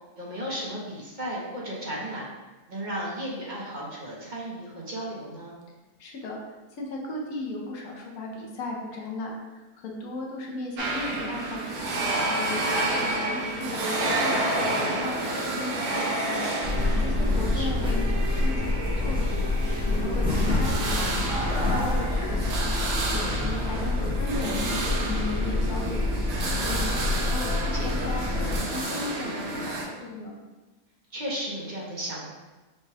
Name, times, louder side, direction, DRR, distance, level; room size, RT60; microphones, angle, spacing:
voice 1, 0.1-2.3 2.7-5.6 17.2-17.9 27.3-28.1 31.1-32.3, equal, 40° right, -5 dB, 0.9 m, -35 dB
voice 2, 6.0-6.4 6.8-12.0 12.4-16.5 17.0-19.5 19.9-22.7 23.1-27.5 27.8-30.4, left 2 dB, 75° left, -1 dB, 1.3 m, -36 dB
sound 1, 10.8-29.8, right 2 dB, 80° right, 1.3 m, -30 dB
sound 2, 16.6-28.6, left 2 dB, 10° right, 0.3 m, -27 dB
5.3 x 2.3 x 3.4 m, 1.2 s
omnidirectional pair, 1.5 m